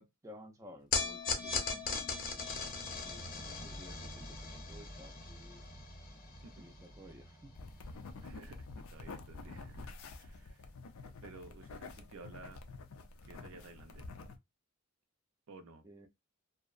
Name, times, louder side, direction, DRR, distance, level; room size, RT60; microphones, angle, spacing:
voice 1, 0.0-5.6 6.6-7.5 15.8-16.1, equal, 15° right, 0.4 m, -55 dB
sound 1, 0.9-7.3, left 5 dB, 40° left, 0.6 m, -39 dB
sound 2, 1.7-12.7, right 1 dB, 15° left, 0.8 m, -53 dB
sound 3, 7.6-14.4, left 3 dB, 80° left, 0.4 m, -48 dB
voice 2, 8.2-10.6 11.0-12.6 13.3-14.1 15.5-15.9, right 3 dB, 70° right, 0.5 m, -54 dB
2.7 x 2.0 x 2.4 m
head